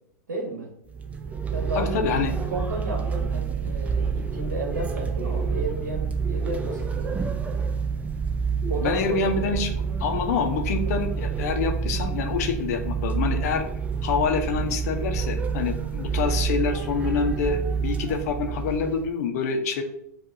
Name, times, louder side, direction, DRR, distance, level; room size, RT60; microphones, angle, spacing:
voice 1, 0.3-2.0 2.5-7.7 8.7-9.7, right 2 dB, 80° right, 0 dB, 1.1 m, -34 dB
sound 1, 0.9-19.1, right 5 dB, 15° right, 0.4 m, -28 dB
voice 2, 1.7-2.3 8.8-9.7 10.0-13.7 14.0-19.8, left 5 dB, 65° left, 5 dB, 0.8 m, -26 dB
7.7 x 2.6 x 2.6 m, 0.75 s
hypercardioid pair, 105°, 9 cm